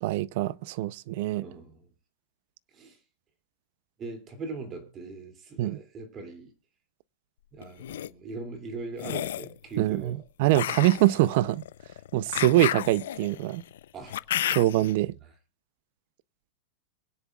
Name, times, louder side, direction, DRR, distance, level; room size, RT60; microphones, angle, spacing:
voice 1, 0.0-1.4 5.6-5.8 9.8-11.6 12.1-13.6 14.5-15.1, right 16 dB, 50° right, 0.5 m, -24 dB
voice 2, 1.4-1.9 2.7-3.0 4.0-6.5 7.5-10.2 13.9-14.2 15.0-15.3, right 3 dB, 25° right, 2.6 m, -40 dB
sound 1, 7.6-8.1 9.0-9.5 10.5-14.9, left 12 dB, 75° left, 0.5 m, -32 dB
24.5 x 10.0 x 2.3 m
supercardioid pair, 150°, 0 cm